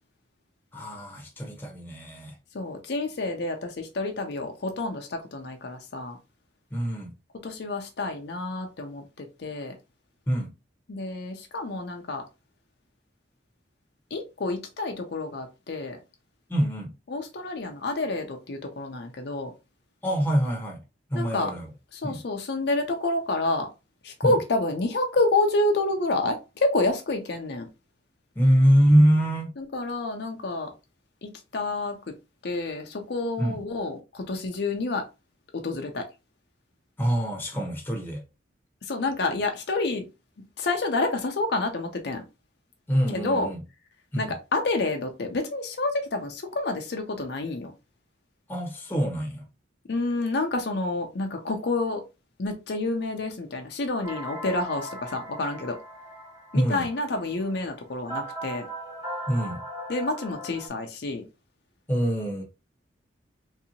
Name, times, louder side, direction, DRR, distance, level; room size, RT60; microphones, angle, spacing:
voice 1, 0.7-2.4 6.7-7.1 10.3-10.5 16.5-16.9 20.0-20.8 21.1-21.7 22.0-22.2 24.2-24.4 28.3-29.5 33.4-33.6 37.0-38.2 42.9-43.6 44.1-44.3 48.5-49.5 56.5-56.9 59.3-59.6 61.9-62.4, equal, 10° left, 0.9 m, -24 dB
voice 2, 2.5-6.2 7.4-9.7 10.9-12.2 14.1-16.0 17.1-19.5 21.1-21.5 21.9-23.7 24.0-27.7 29.6-30.7 31.2-32.1 32.4-35.1 35.5-36.1 38.8-40.1 40.6-42.2 43.1-43.5 44.2-47.7 49.9-52.0 52.4-55.8 56.5-58.7 59.9-61.2, left 2 dB, 55° left, 0.5 m, -28 dB
sound 1, 54.0-60.7, right 1 dB, 20° right, 1.0 m, -38 dB
3.3 x 2.8 x 2.7 m
head